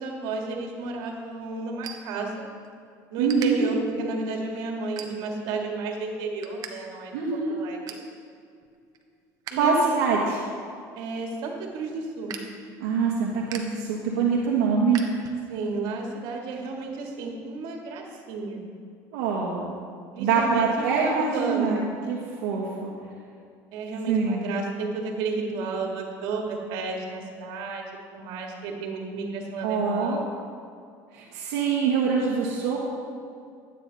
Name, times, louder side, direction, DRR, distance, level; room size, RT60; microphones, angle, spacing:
voice 1, 0.0-2.5 3.1-7.1 7.5-7.8 9.5-10.0 11.0-12.3 15.5-18.6 20.1-20.7 20.9-21.9 23.7-30.3, right 3 dB, 70° right, 0 dB, 2.1 m, -32 dB
sound 1, 0.7-2.8 3.0-3.5 4.1-4.3 4.8-5.5 5.9-6.7 7.0-7.1 7.5-8.1 8.6-9.5 9.9-15.7, right 7 dB, 50° right, 1.1 m, -43 dB
voice 2, 3.2-3.6 7.1-7.5 9.6-10.4 12.8-15.0 19.1-19.7 20.2-21.8 22.1-22.9 24.1-24.5 29.6-30.2 31.1-32.8, right 5 dB, 85° right, -4 dB, 1.5 m, -24 dB
12.0 x 9.1 x 4.1 m, 2.3 s
cardioid pair, 120°, 8 cm